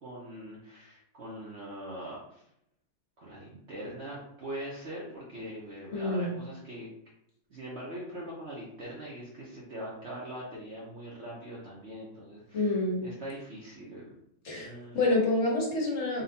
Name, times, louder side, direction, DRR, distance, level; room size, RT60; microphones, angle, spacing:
voice 1, 0.0-2.4 3.2-6.9 7.5-14.1 14.5-15.0, right 1 dB, 55° right, -5 dB, 1.1 m, -42 dB
voice 2, 5.9-6.4 12.5-13.1 14.4-16.2, left 2 dB, 55° left, -2 dB, 1.5 m, -28 dB
4.1 x 2.4 x 3.9 m, 0.77 s
omnidirectional pair, 1.5 m